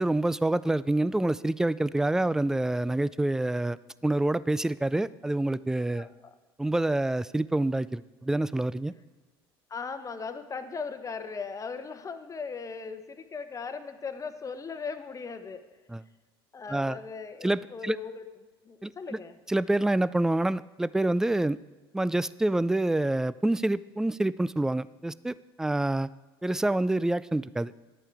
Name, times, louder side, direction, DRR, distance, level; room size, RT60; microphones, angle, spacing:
voice 1, 0.0-3.8 4.0-6.1 6.6-8.9 15.9-16.0 16.7-17.0 17.4-18.0 18.8-18.9 19.5-21.6 21.9-26.1 26.4-27.7, right 1 dB, 5° right, 19 dB, 0.3 m, -27 dB
voice 2, 6.0-6.4 9.7-15.6 16.5-18.2 18.6-19.4, left 5 dB, 25° left, 9 dB, 1.0 m, -38 dB
11.5 x 8.9 x 4.6 m, 1.3 s
hypercardioid pair, 70°, 13 cm